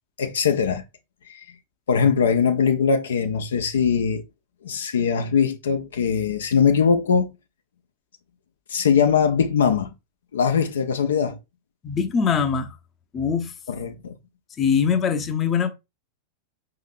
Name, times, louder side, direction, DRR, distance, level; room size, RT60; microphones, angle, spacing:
voice 1, 0.2-0.8 1.3-1.5 1.9-4.2 4.6-7.3 8.7-9.9 10.3-11.4 13.7-14.1, left 6 dB, 65° left, 0.5 m, -21 dB
voice 2, 11.8-12.8 13.1-13.5 14.6-15.7, left 6 dB, 25° left, 0.7 m, -22 dB
5.4 x 3.8 x 2.5 m
figure-of-eight pair, 90°, 0 cm